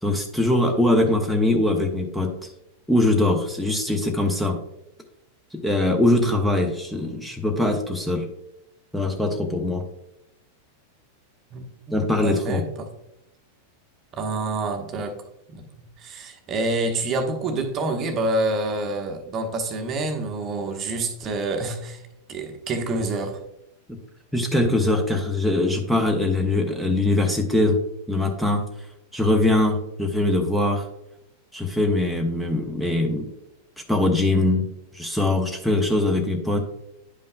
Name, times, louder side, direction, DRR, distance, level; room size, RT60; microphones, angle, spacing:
voice 1, 0.0-2.3 2.9-4.6 5.5-8.3 8.9-9.8 11.9-12.6 23.9-24.0 24.3-27.8 28.1-28.6 29.1-30.8 31.5-33.3 33.9-34.7 34.9-36.6, left 2 dB, ahead, 2 dB, 0.8 m, -22 dB
voice 2, 6.1-6.4 11.5-12.0 12.2-12.9 14.2-15.2 15.5-22.0 22.3-23.4, right 2 dB, 30° right, 5 dB, 0.9 m, -27 dB
10.0 x 5.3 x 2.2 m, 0.82 s
figure-of-eight pair, 90°, 0 cm